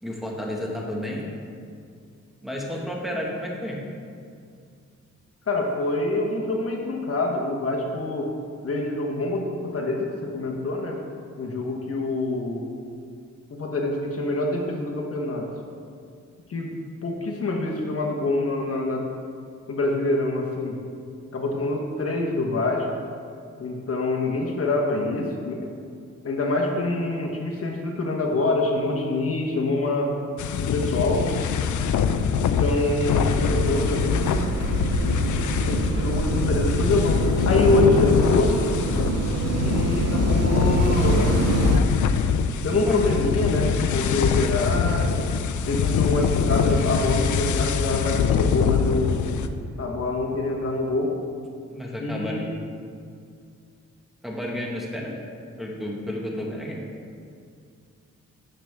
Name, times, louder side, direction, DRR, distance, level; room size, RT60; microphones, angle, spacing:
voice 1, 0.0-1.3 2.4-3.9 42.7-43.2 51.7-52.5 54.2-55.2 55.6-56.8, left 1 dB, ahead, -3 dB, 1.6 m, -31 dB
voice 2, 5.5-8.3 8.6-11.0 11.4-12.7 13.5-15.5 16.5-19.0 19.7-20.7 21.3-22.9 23.6-25.7 26.2-30.1 30.6-31.3 32.4-34.4 35.7-38.6 39.5-41.6 42.6-45.2 45.7-49.3 49.8-51.1 52.0-52.5, left 2 dB, 50° left, 0 dB, 1.1 m, -25 dB
sound 1, 30.4-49.5, left 6 dB, 80° left, 0.5 m, -23 dB
sound 2, 33.3-41.8, right 4 dB, 60° right, 0.7 m, -26 dB
10.0 x 6.6 x 3.5 m, 2.3 s
cardioid pair, 70°, 30 cm